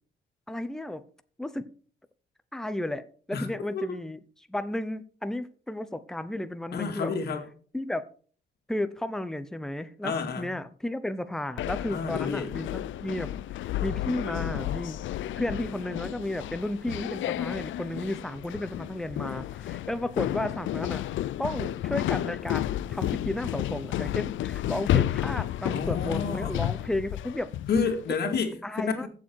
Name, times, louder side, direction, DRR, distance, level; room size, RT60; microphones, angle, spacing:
voice 1, 0.5-1.0 1.4-1.6 2.5-4.2 4.5-7.1 7.7-8.0 8.7-13.3 13.8-15.0 15.3-21.0 21.4-27.5 28.6-29.1, left 1 dB, 5° left, 0.7 m, -33 dB
voice 2, 3.3-3.8 6.7-7.4 10.0-10.5 11.9-12.5 25.7-26.6 27.7-29.1, left 5 dB, 55° left, 2.3 m, -30 dB
sound 1, 11.6-28.1, left 13 dB, 85° left, 0.5 m, -31 dB
15.0 x 7.2 x 4.6 m
cardioid pair, 170°, 19 cm